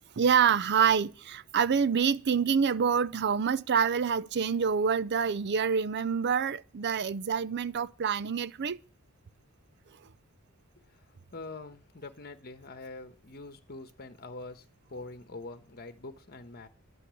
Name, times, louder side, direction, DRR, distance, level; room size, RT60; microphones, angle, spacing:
voice 1, 0.2-8.8, right 6 dB, 50° right, 0.5 m, -26 dB
voice 2, 11.3-16.7, left 3 dB, 45° left, 1.3 m, -44 dB
11.0 x 8.4 x 8.4 m
head